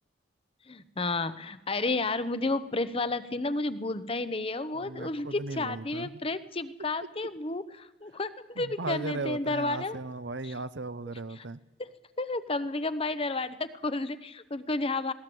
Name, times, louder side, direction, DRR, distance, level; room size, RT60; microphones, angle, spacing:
voice 1, 0.7-10.0 10.4-10.5 11.4-11.5 11.8-15.1, left 2 dB, 30° left, 13 dB, 0.9 m, -32 dB
voice 2, 4.8-6.1 8.6-11.6, right 3 dB, 70° right, 14 dB, 0.9 m, -36 dB
20.5 x 18.0 x 7.8 m, 0.98 s
head